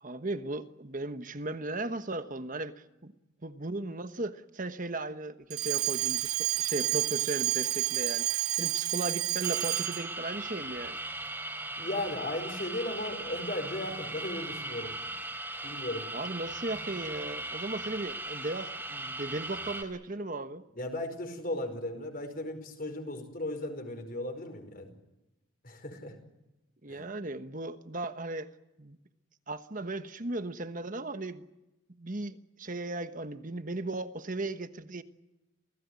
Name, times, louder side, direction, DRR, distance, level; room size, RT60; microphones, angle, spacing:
voice 1, 0.0-2.7 3.0-3.1 3.4-11.0 16.1-20.6 26.8-28.5 28.8-29.0 29.5-31.5 32.0-35.0, right 2 dB, 40° right, 10 dB, 1.2 m, -36 dB
Alarm, 5.5-10.1, right 14 dB, 85° right, 1.1 m, -30 dB
sound 1, 9.4-19.8, right 2 dB, 10° right, 3.7 m, -38 dB
voice 2, 11.8-15.1 15.6-16.1 20.7-24.9 25.6-26.2 26.9-27.1, left 1 dB, 40° left, 6 dB, 5.1 m, -36 dB
28.0 x 18.0 x 9.7 m, 0.97 s
head